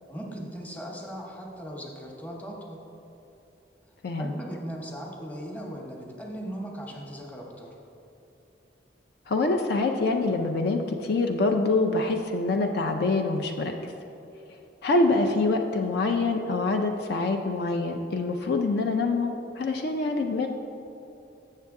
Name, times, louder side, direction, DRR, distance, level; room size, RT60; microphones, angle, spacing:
voice 1, 0.1-2.8 4.2-7.7, right 1 dB, 10° left, -1 dB, 0.9 m, -38 dB
voice 2, 4.0-4.4 9.3-13.7 14.8-20.5, left 3 dB, 60° left, 4 dB, 0.4 m, -25 dB
7.4 x 6.6 x 3.6 m, 2.8 s
head